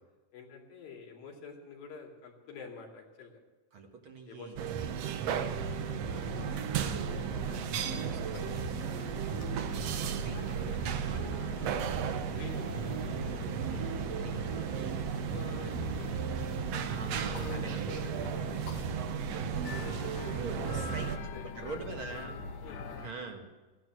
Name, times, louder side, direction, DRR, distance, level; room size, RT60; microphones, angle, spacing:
voice 1, 0.3-3.4 4.3-4.8 5.8-6.3 8.1-8.4 9.6-10.0 12.3-13.1 13.7-13.9 14.6-14.9 15.3-16.8 17.2-18.6 19.7-20.0 20.6-22.0 22.6-22.8, left 5 dB, 90° left, 0 dB, 4.4 m, -48 dB
voice 2, 3.7-5.3 6.2-7.0 7.4-9.3 10.2-11.7 13.5-14.9 16.9-18.0 20.3-22.4 23.0-23.5, right 4 dB, 45° right, 3 dB, 1.9 m, -45 dB
sound 1, 4.6-21.2, right 8 dB, 75° right, 1.5 m, -35 dB
sound 2, 5.3-23.1, left 4 dB, 60° left, 2.1 m, -43 dB
16.0 x 11.0 x 7.6 m, 1.2 s
omnidirectional pair, 4.0 m